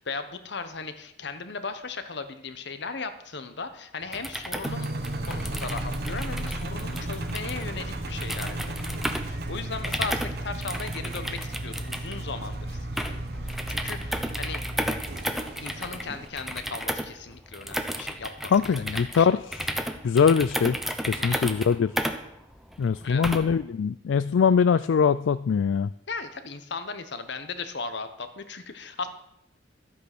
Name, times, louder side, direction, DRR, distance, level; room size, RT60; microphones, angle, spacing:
voice 1, 0.0-4.9 5.3-14.6 15.6-19.3 21.2-21.5 23.0-23.2 26.1-29.1, left 4 dB, 65° left, 10 dB, 1.2 m, -37 dB
sound 1, 4.0-23.6, equal, ahead, 0.8 m, -34 dB
Engine, 4.7-16.3, right 1 dB, 60° right, 1.3 m, -34 dB
voice 2, 18.5-19.7 20.0-20.8 21.1-21.9 22.8-25.9, left 6 dB, 85° left, 14 dB, 0.4 m, -22 dB
12.5 x 8.5 x 6.1 m, 0.79 s
head